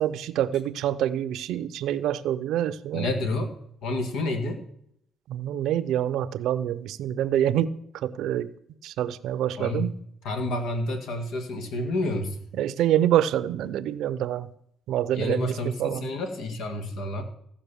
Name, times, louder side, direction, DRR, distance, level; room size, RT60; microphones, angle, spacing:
voice 1, 0.0-3.1 5.3-8.5 8.8-9.9 12.5-14.5 14.9-16.0, right 11 dB, 85° right, 16 dB, 0.6 m, -26 dB
voice 2, 2.9-3.5 3.8-4.6 9.6-9.9 10.2-12.4 15.1-17.2, left 2 dB, 80° left, 5 dB, 2.1 m, -29 dB
15.0 x 5.5 x 6.9 m, 0.71 s
cardioid pair, 90°, 0 cm